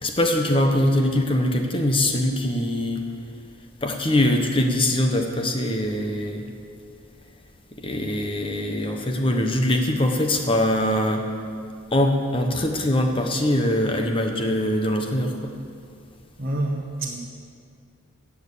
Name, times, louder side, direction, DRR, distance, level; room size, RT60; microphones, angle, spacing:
voice 1, 0.0-3.0 3.8-6.5 7.8-11.2 11.9-15.5, left 1 dB, 25° left, 4 dB, 1.0 m, -22 dB
voice 2, 16.4-17.2, right 1 dB, 45° right, -2 dB, 1.0 m, -27 dB
14.0 x 7.2 x 8.4 m, 2.3 s
head